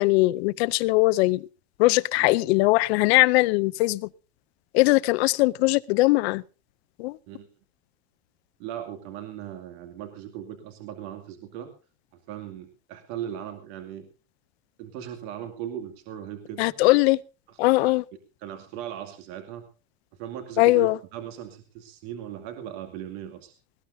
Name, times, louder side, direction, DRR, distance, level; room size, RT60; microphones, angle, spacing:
voice 1, 0.0-1.5 1.8-4.1 4.7-6.4 7.0-7.2 16.6-17.2 17.6-18.0 20.6-21.0, left 21 dB, 55° left, 0.6 m, -20 dB
voice 2, 2.2-2.6 7.3-7.5 8.6-11.7 12.3-14.1 14.8-16.8 17.5-17.9 18.4-19.6 20.2-23.5, right 10 dB, 55° right, 2.6 m, -38 dB
19.5 x 17.5 x 2.7 m
supercardioid pair, 160°, 38 cm